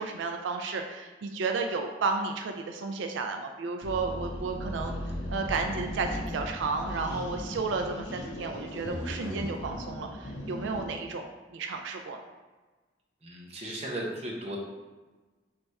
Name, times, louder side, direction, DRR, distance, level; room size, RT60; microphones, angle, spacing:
voice 1, 0.0-12.2, right 4 dB, 85° right, 4 dB, 0.3 m, -32 dB
sound 1, 3.8-11.0, left 1 dB, 80° left, 0.7 m, -37 dB
voice 2, 13.2-14.6, right 1 dB, 35° right, -2 dB, 0.8 m, -36 dB
3.4 x 3.3 x 4.1 m, 1.3 s
head